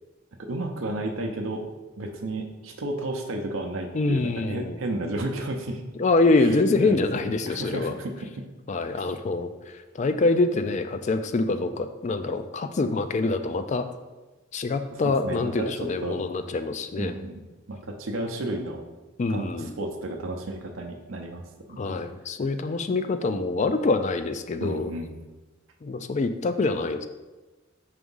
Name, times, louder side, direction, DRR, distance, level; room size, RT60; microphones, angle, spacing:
voice 1, 0.4-1.6 2.0-5.8 6.4-8.5 8.9-9.1 14.9-16.2 17.0-17.4 17.7-18.8 19.3-22.0 24.6-25.1, right 2 dB, 90° right, 3 dB, 0.6 m, -33 dB
voice 2, 3.9-4.8 6.0-7.9 8.7-13.9 14.5-17.1 19.2-19.7 21.8-24.9 25.8-27.1, left 3 dB, 35° left, 9 dB, 0.3 m, -25 dB
4.9 x 3.5 x 5.4 m, 1.2 s
head